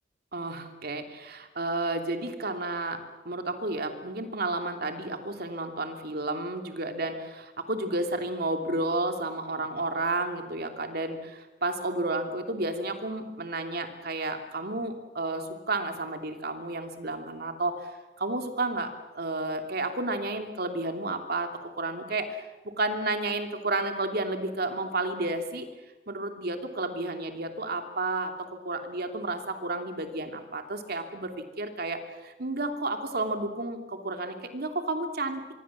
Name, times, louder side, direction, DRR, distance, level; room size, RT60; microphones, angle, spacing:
voice 1, 0.3-3.0 3.2-17.9 18.2-21.5 21.8-25.7 26.1-28.3 28.6-35.5, right 2 dB, 60° right, 6 dB, 2.9 m, -31 dB
25.5 x 23.0 x 7.5 m, 1.2 s
head